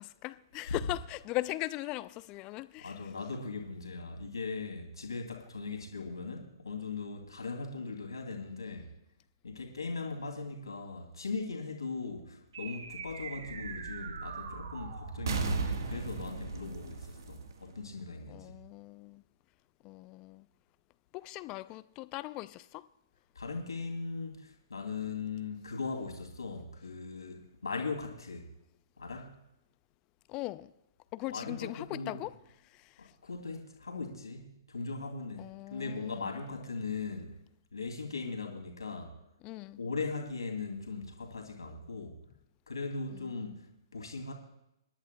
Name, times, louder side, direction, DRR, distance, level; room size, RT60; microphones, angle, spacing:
voice 1, 0.0-3.1 18.3-19.2 19.8-20.5 21.1-22.9 30.3-30.7 31.1-32.4 32.6-33.1 35.4-36.4 39.4-39.8 43.1-43.3, left 19 dB, 30° left, 0.4 m, -39 dB
voice 2, 2.8-8.9 9.4-18.6 23.3-28.4 29.0-29.4 31.3-32.2 33.0-37.3 37.7-39.1 39.8-42.2 42.7-43.6 43.9-44.3, left 4 dB, 80° left, 2.8 m, -39 dB
sound 1, 12.5-18.2, right 4 dB, 65° right, 1.5 m, -38 dB
26.5 x 11.0 x 2.3 m
figure-of-eight pair, 125°, 2 cm